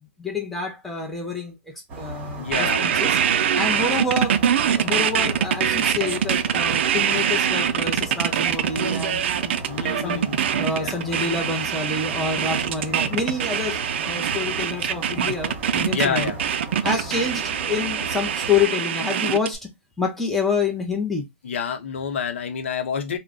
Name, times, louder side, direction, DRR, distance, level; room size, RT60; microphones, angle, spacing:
voice 1, 0.2-1.5 2.0-3.2 3.5-4.4 4.7-9.5 10.0-10.2 10.6-16.3 16.8-19.6 20.0-21.2, left 4 dB, 5° left, 0.7 m, -27 dB
sound 1, 1.9-18.7, right 2 dB, 25° right, 1.1 m, -37 dB
voice 2, 2.4-3.0 9.7-10.4 10.7-11.0 15.9-16.4 21.4-23.2, left 6 dB, 70° left, 0.7 m, -28 dB
sound 2, 2.5-19.6, right 8 dB, 60° right, 0.4 m, -23 dB
2.3 x 2.1 x 3.6 m
hypercardioid pair, 140°, 7 cm